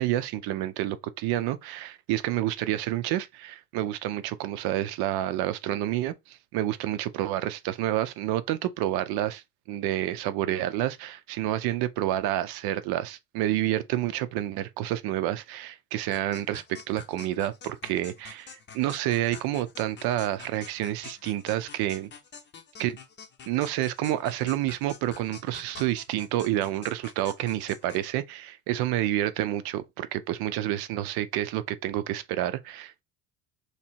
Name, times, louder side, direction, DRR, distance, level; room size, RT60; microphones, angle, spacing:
voice 1, 0.0-22.1 22.8-23.0 23.5-33.0, right 13 dB, 70° right, 0.6 m, -29 dB
sound 1, 16.1-28.1, left 6 dB, 30° left, 0.7 m, -47 dB
3.3 x 2.8 x 4.4 m
cardioid pair, 135°, 39 cm